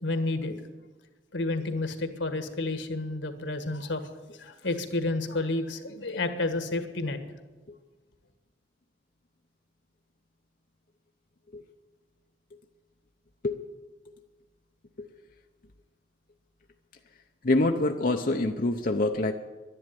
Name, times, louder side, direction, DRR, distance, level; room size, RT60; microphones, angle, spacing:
voice 1, 0.0-0.5 1.3-4.0 4.4-7.2, left 2 dB, 85° left, 9 dB, 1.6 m, -30 dB
voice 2, 17.4-19.3, left 2 dB, 50° left, 4 dB, 0.7 m, -25 dB
11.5 x 11.0 x 9.7 m, 1.3 s
head